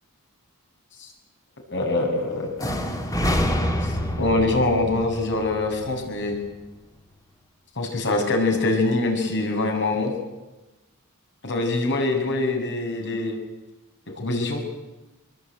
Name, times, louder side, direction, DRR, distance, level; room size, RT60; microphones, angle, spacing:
voice 1, 1.7-2.7 3.8-6.4 7.8-10.1 11.4-13.4 14.2-14.6, left 2 dB, 55° left, 2 dB, 7.2 m, -24 dB
sound 1, 2.6-6.5, equal, 15° left, 2.9 m, -27 dB
25.5 x 22.0 x 9.4 m, 1.1 s
head